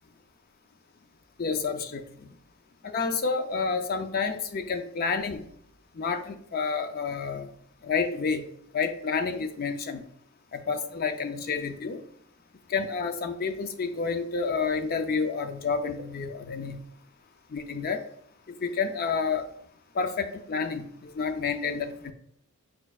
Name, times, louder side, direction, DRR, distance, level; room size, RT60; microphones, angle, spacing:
voice 1, 1.4-2.3 2.8-5.5 5.9-7.5 7.8-8.5 8.7-10.1 10.5-12.0 12.7-16.8 17.5-18.0 18.5-19.5 19.9-22.1, left 5 dB, 45° left, 7 dB, 0.5 m, -29 dB
4.6 x 4.4 x 2.4 m, 0.67 s
head